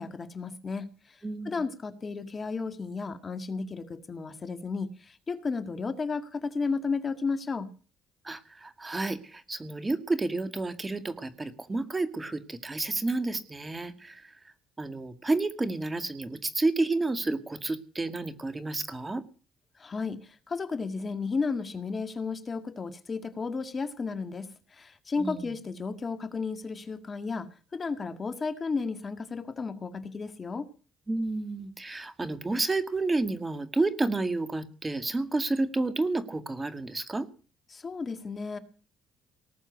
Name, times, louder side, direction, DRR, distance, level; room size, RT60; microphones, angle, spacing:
voice 1, 0.0-1.2 1.5-7.7 19.8-30.7 37.7-38.6, left 4 dB, 35° left, 10 dB, 1.8 m, -33 dB
voice 2, 8.2-14.4 14.8-19.2 25.2-25.5 31.1-37.3, right 2 dB, 25° right, 10 dB, 2.0 m, -30 dB
19.0 x 7.1 x 8.3 m, 0.38 s
supercardioid pair, 65°, 0 cm